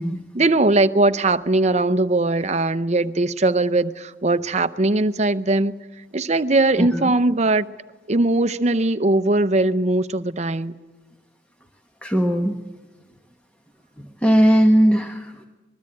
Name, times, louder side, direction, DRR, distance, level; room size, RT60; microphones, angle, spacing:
voice 1, 0.3-5.7 6.1-7.6 8.1-10.7, right 2 dB, 35° right, 0.7 m, -20 dB
voice 2, 6.8-7.1 12.0-12.6 14.0-15.5, equal, 5° left, 1.2 m, -19 dB
26.5 x 21.0 x 8.7 m
head